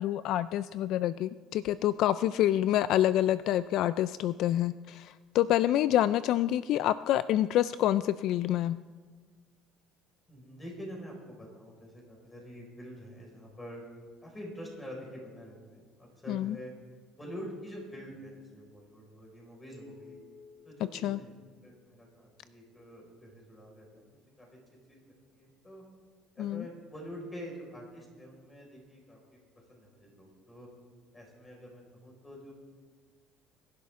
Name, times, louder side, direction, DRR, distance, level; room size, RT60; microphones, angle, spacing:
voice 1, 0.0-8.8 16.3-16.6 21.0-21.2 26.4-26.6, left 12 dB, 65° left, 15 dB, 0.3 m, -27 dB
voice 2, 10.3-13.8 14.2-16.7 17.2-20.2 20.6-24.6 24.9-25.8 26.4-29.4 29.7-30.7 31.1-32.5, equal, 15° left, -1 dB, 5.2 m, -46 dB
sound 1, 19.7-22.1, left 5 dB, 45° left, 3.9 m, -55 dB
24.0 x 11.5 x 3.7 m, 1.5 s
cardioid pair, 120°, 0 cm